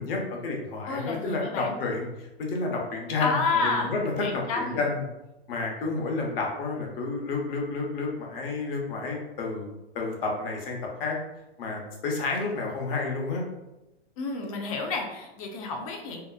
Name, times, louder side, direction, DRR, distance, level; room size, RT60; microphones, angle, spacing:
voice 1, 0.0-5.0 5.5-9.7 9.9-11.2 11.6-13.4, left 3 dB, 60° left, 0 dB, 0.8 m, -30 dB
voice 2, 0.8-1.8 3.2-3.9 4.2-4.8 14.2-16.2, left 3 dB, 35° left, 2 dB, 0.4 m, -30 dB
2.8 x 2.4 x 2.3 m, 0.98 s
hypercardioid pair, 145°, 32 cm